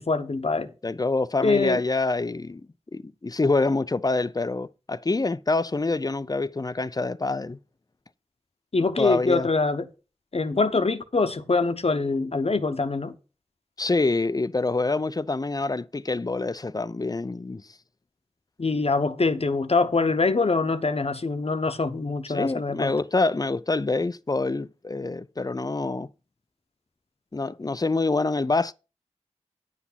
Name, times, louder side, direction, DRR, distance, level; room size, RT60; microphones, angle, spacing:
voice 1, 0.0-0.7 1.4-1.8 8.7-9.9 10.3-13.1 18.6-22.9, left 3 dB, 60° left, 1.0 m, -24 dB
voice 2, 0.8-2.7 2.9-7.6 9.0-9.5 13.8-17.6 22.3-26.1 27.3-28.7, left 3 dB, 35° left, 0.5 m, -26 dB
9.3 x 6.1 x 5.7 m
wide cardioid pair, 40°, 11 cm